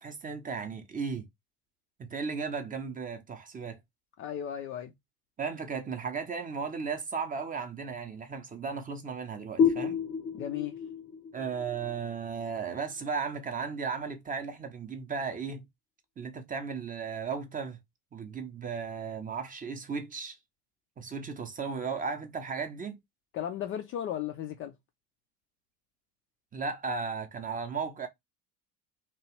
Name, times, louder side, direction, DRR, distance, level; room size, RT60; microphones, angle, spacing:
voice 1, 0.0-1.3 2.0-3.8 5.4-10.0 11.3-15.7 16.2-17.8 18.1-20.4 21.0-23.0 26.5-28.1, right 5 dB, 15° right, 0.6 m, -35 dB
voice 2, 4.2-4.9 10.3-10.8 23.3-24.7, left 10 dB, 30° left, 0.4 m, -35 dB
sound 1, 9.6-13.0, left 7 dB, 85° left, 0.8 m, -30 dB
2.9 x 2.3 x 3.0 m
hypercardioid pair, 75°, 48 cm